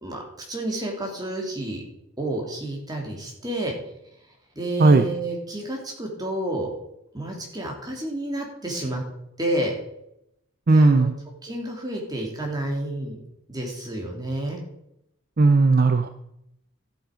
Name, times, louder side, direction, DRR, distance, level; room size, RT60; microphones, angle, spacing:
voice 1, 0.0-1.8 2.2-3.7 4.5-6.7 7.1-9.0 9.4-9.7 10.7-11.1 11.4-13.2 13.5-14.6, right 1 dB, 20° right, 0 dB, 2.7 m, -30 dB
voice 2, 10.7-11.1 15.4-16.1, right 3 dB, 45° right, 9 dB, 0.5 m, -16 dB
13.5 x 8.0 x 5.1 m, 0.81 s
head